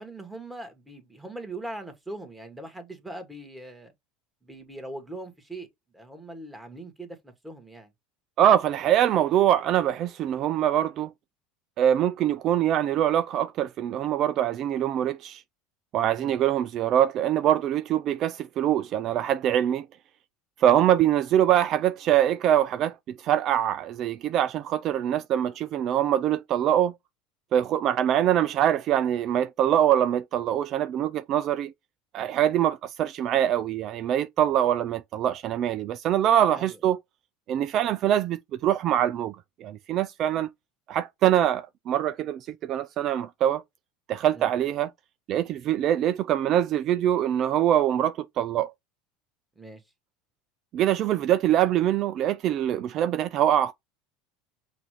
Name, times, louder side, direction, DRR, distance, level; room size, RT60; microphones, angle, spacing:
voice 1, 0.0-3.9 4.4-5.7 5.9-7.9 16.1-16.4 36.5-36.8 44.3-44.5 49.5-49.8, right 2 dB, 10° right, 1.8 m, -41 dB
voice 2, 8.4-11.1 11.8-15.4 15.9-19.9 20.6-26.9 27.5-31.7 32.1-37.0 37.5-39.4 39.6-40.5 40.9-43.6 44.1-44.9 45.3-48.7 50.7-53.7, right 11 dB, 50° right, 0.4 m, -24 dB
5.9 x 2.6 x 3.1 m
hypercardioid pair, 95°, 0 cm